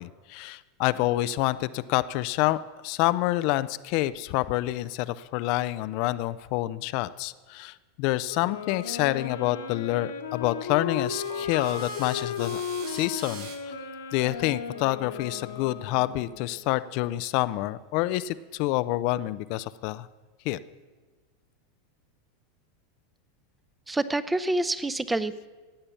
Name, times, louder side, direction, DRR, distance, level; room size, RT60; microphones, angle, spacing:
voice 1, 0.0-13.7 14.1-20.1 20.4-20.6, left 17 dB, 55° left, 14 dB, 0.5 m, -28 dB
Wind instrument woodwind instrument, 8.3-16.6, left 6 dB, 85° left, 1.6 m, -35 dB
sound 1, 10.9-16.1, right 5 dB, 65° right, 2.5 m, -46 dB
voice 2, 23.9-25.5, right 2 dB, 10° right, 14 dB, 0.8 m, -27 dB
16.0 x 8.8 x 7.0 m, 1.3 s
hypercardioid pair, 100°, 0 cm